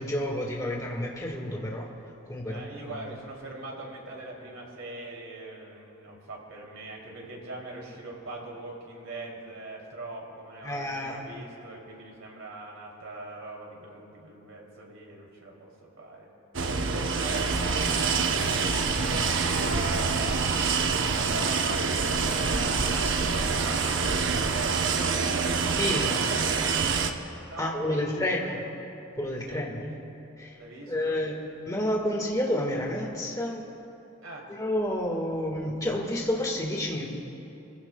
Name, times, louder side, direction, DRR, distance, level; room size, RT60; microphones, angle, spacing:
voice 1, 0.0-1.9 2.3-3.1 10.6-11.2 25.8-26.2 27.6-28.6 29.1-29.9 30.4-30.6 30.9-31.4 31.7-33.6 34.5-37.1, left 1 dB, 15° left, -1 dB, 1.6 m, -30 dB
voice 2, 2.4-16.3 16.8-18.3 18.8-26.6 27.4-28.6 29.4-29.7 30.6-31.2 34.2-34.5, right 2 dB, 90° right, -2 dB, 2.8 m, -41 dB
sound 1, 16.5-27.1, right 4 dB, 65° right, 0.8 m, -26 dB
25.5 x 15.5 x 2.2 m, 2.8 s
head